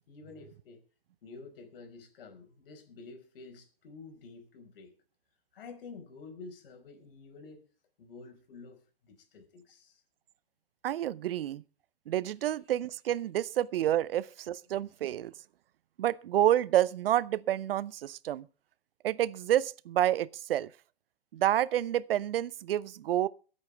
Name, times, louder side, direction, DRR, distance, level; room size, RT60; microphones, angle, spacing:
voice 1, 0.1-0.8 1.2-4.9 5.5-7.6 8.0-10.0, left 4 dB, 65° left, 4.9 m, -49 dB
voice 2, 10.8-11.6 12.1-15.3 16.0-18.5 19.0-20.7 21.3-23.3, right 12 dB, 65° right, 0.8 m, -29 dB
22.5 x 8.5 x 3.4 m
hypercardioid pair, 120°, 31 cm